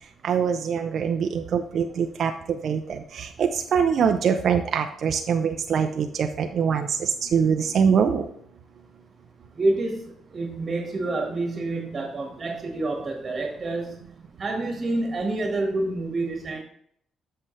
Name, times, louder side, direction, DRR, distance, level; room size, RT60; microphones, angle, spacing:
voice 1, 0.2-2.3 2.6-8.2, right 7 dB, 60° right, 5 dB, 0.5 m, -23 dB
voice 2, 9.5-14.0 14.4-16.6, right 2 dB, 35° right, 2 dB, 1.6 m, -28 dB
7.5 x 6.5 x 3.2 m, 0.68 s
cardioid pair, 90°, 0 cm